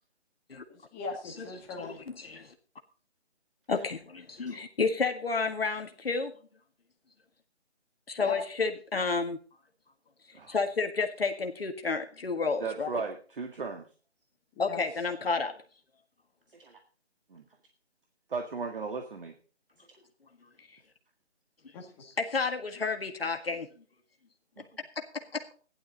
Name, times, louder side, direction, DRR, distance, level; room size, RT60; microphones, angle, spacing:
voice 1, 0.7-2.0 8.2-8.4 14.5-14.8 21.7-22.0, left 4 dB, 10° left, 1 dB, 1.6 m, -39 dB
voice 2, 1.8-2.5 3.7-6.4 8.1-9.4 10.3-13.0 14.6-15.6 20.6-20.8 22.0-23.7 24.6-24.7 25.0-25.5, left 4 dB, 55° left, 5 dB, 1.8 m, -31 dB
voice 3, 12.6-13.8 16.6-16.8 17.3-17.4 18.3-19.3, right 4 dB, 50° right, 5 dB, 2.0 m, -36 dB
16.0 x 11.5 x 3.9 m, 0.39 s
figure-of-eight pair, 160°, 35 cm